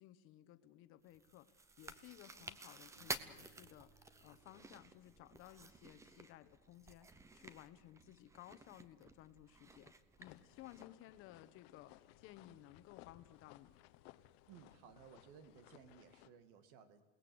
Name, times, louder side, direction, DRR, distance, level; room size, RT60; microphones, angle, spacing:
voice 1, 0.0-1.5 1.8-9.9 10.2-13.8, left 13 dB, 45° left, 12 dB, 1.2 m, -58 dB
Chewing mastication, 1.1-10.9, right 3 dB, 10° right, 0.8 m, -52 dB
sound 1, 3.0-6.2, right 2 dB, 40° right, 5.1 m, -70 dB
sound 2, 10.2-16.3, left 16 dB, 75° left, 1.2 m, -62 dB
voice 2, 14.5-17.0, right 7 dB, 65° right, 10 dB, 2.5 m, -60 dB
28.5 x 18.5 x 8.0 m, 1.1 s
cardioid pair, 170°, 31 cm